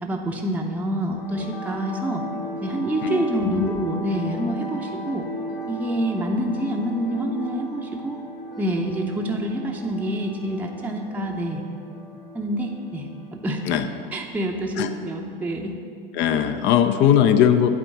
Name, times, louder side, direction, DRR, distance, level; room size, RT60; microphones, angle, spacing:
voice 1, 0.0-2.3 2.6-5.3 5.7-8.2 8.6-11.6 12.3-13.6 14.1-15.8, right 1 dB, 5° right, 1 dB, 0.7 m, -27 dB
sound 1, 1.0-15.1, equal, 70° left, 1.7 m, -37 dB
voice 2, 3.0-3.7 13.7-13.9 14.8-14.9 16.1-17.7, left 9 dB, 40° left, 9 dB, 0.5 m, -19 dB
8.6 x 4.5 x 7.2 m, 2.4 s
figure-of-eight pair, 85°, 30 cm